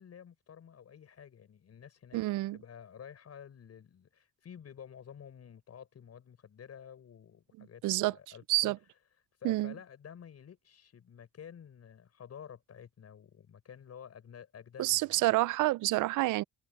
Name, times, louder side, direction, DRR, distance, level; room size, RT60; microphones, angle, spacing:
voice 1, 0.0-2.2 2.5-8.7 9.4-15.3, left 8 dB, 55° left, 6.1 m, -51 dB
voice 2, 2.1-2.6 7.8-8.1 8.5-8.8 9.4-9.7 14.8-16.4, right 19 dB, 85° right, 0.5 m, -28 dB
cardioid pair, 90°, 30 cm